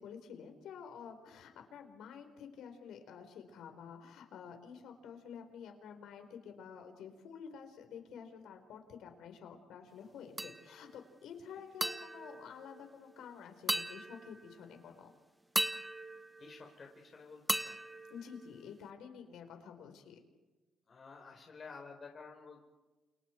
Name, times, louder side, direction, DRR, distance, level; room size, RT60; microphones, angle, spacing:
voice 1, 0.0-15.1 18.1-20.2, left 7 dB, 80° left, 6 dB, 4.5 m, -50 dB
sound 1, 10.4-11.0 11.8-13.2 13.7-14.7 15.6-17.0 17.5-18.9, right 1 dB, 5° right, 1.1 m, -38 dB
voice 2, 16.4-17.8 20.9-22.6, left 4 dB, 40° left, 1 dB, 4.3 m, -52 dB
29.5 x 28.5 x 4.7 m, 1.2 s
cardioid pair, 90°, 0 cm